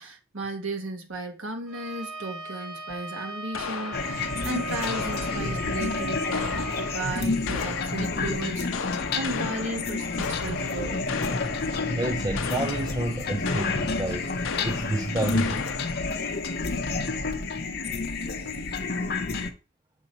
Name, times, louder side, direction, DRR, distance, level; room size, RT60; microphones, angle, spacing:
voice 1, 0.0-11.1, right 2 dB, 75° right, 1.4 m, -35 dB
Bowed string instrument, 1.7-7.0, right 3 dB, ahead, 1.1 m, -38 dB
sound 1, 3.5-5.7 6.3-8.2 8.7-11.9 12.4-13.2 13.5-16.2, left 6 dB, 85° left, 0.6 m, -36 dB
sound 2, 3.9-19.5, left 3 dB, 50° left, 0.7 m, -29 dB
voice 2, 11.9-14.3 14.6-15.6, right 2 dB, 20° right, 0.4 m, -29 dB
7.1 x 2.9 x 5.4 m
head